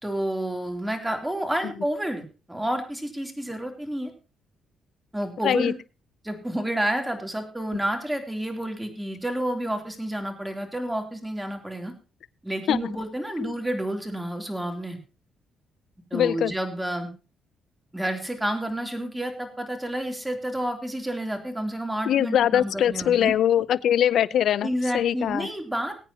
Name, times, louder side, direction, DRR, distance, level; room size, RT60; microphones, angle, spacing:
voice 1, 0.0-2.2 2.5-4.1 5.1-5.7 6.2-11.9 12.4-15.0 16.1-17.1 17.9-23.3 24.6-26.0, right 1 dB, 5° right, 4 dB, 3.2 m, -29 dB
voice 2, 16.1-16.5 22.1-24.7 24.9-25.5, left 10 dB, 70° left, 19 dB, 0.5 m, -22 dB
20.5 x 8.9 x 2.9 m, 0.32 s
cardioid pair, 90°, 0 cm